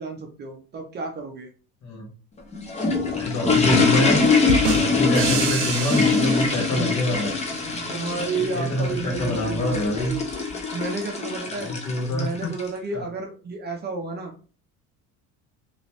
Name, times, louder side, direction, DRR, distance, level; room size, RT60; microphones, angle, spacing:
voice 1, 0.0-1.5 7.7-10.3 10.5-11.7 12.1-14.3, right 4 dB, 30° right, 3 dB, 0.5 m, -31 dB
sound 1, 2.4-12.7, left 4 dB, 20° left, 0.6 m, -23 dB
voice 2, 3.1-4.3 4.7-7.3 8.5-10.1 11.6-12.5 12.9-13.0, left 1 dB, 50° left, 1 dB, 1.3 m, -26 dB
sound 2, 4.5-7.3, right 5 dB, 85° right, 0.7 m, -29 dB
3.0 x 3.0 x 2.8 m, 0.37 s
cardioid pair, 145°, 36 cm